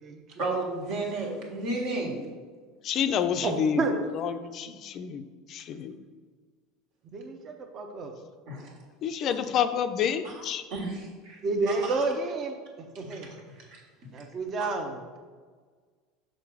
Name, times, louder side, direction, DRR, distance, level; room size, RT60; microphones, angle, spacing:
voice 1, 0.4-2.2 8.5-8.8 10.2-10.4 10.7-11.4 11.7-12.0 12.9-13.8 14.6-14.7, right 2 dB, 65° right, -1 dB, 1.7 m, -33 dB
voice 2, 2.8-5.2 5.5-6.0 9.0-10.6, left 8 dB, 45° left, 9 dB, 0.4 m, -29 dB
voice 3, 3.4-4.0 7.1-8.1 11.4-12.5 13.0-13.3 14.1-15.2, right 3 dB, 40° right, 4 dB, 0.9 m, -30 dB
6.4 x 3.8 x 4.8 m, 1.5 s
hypercardioid pair, 75°, 0 cm